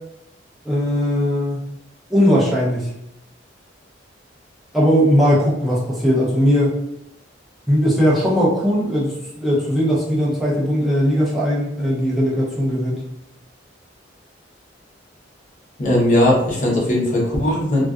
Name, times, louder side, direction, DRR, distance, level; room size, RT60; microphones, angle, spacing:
voice 1, 0.6-1.6 2.1-2.9 4.7-6.7 7.7-13.0, equal, ahead, -7 dB, 0.6 m, -18 dB
voice 2, 15.8-17.8, left 1 dB, 40° left, -4 dB, 0.7 m, -18 dB
2.3 x 2.2 x 2.4 m, 0.80 s
head